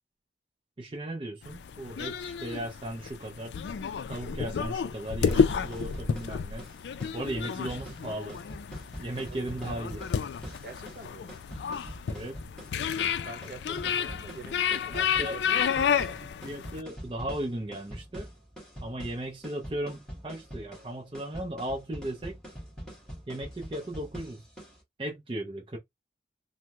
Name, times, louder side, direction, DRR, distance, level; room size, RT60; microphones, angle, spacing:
voice 1, 0.8-3.5 4.1-6.7 7.1-8.4 9.0-10.1 12.1-12.3 14.9-15.4 15.8-16.1 16.4-18.3 18.8-22.4 23.3-24.4 25.0-25.8, right 1 dB, 30° right, 0.5 m, -36 dB
sound 1, 1.4-16.8, left 7 dB, 75° left, 0.3 m, -31 dB
sound 2, 5.1-24.8, equal, 5° left, 1.4 m, -44 dB
voice 2, 10.6-11.3 13.2-16.2, right 2 dB, 55° right, 0.8 m, -45 dB
3.3 x 2.0 x 2.9 m
head